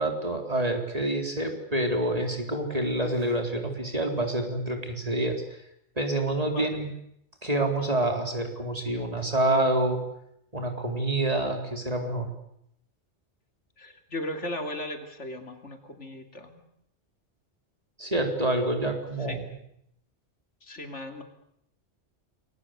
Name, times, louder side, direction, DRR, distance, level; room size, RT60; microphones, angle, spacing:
voice 1, 0.0-5.4 6.0-6.9 7.4-10.0 10.5-12.3 18.0-19.4, right 1 dB, 30° right, 3 dB, 4.2 m, -27 dB
voice 2, 13.8-16.6 19.3-19.4 20.6-21.2, left 1 dB, 80° left, 5 dB, 3.3 m, -36 dB
29.0 x 22.0 x 8.2 m, 0.74 s
omnidirectional pair, 1.2 m